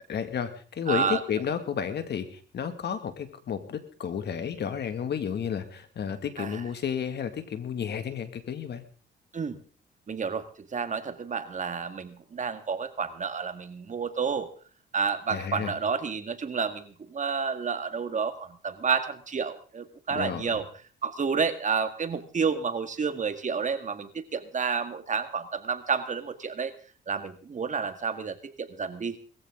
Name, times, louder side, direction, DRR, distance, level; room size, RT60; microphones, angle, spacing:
voice 1, 0.1-8.8 15.3-15.7 20.1-20.6, left 7 dB, 60° left, 9 dB, 2.1 m, -32 dB
voice 2, 0.9-1.2 6.4-6.6 9.3-9.6 10.1-10.5 10.7-14.5 14.9-20.7 21.0-26.7 27.1-29.2, right 5 dB, 40° right, 9 dB, 1.8 m, -30 dB
20.5 x 14.5 x 3.8 m, 0.42 s
cardioid pair, 90°, 20 cm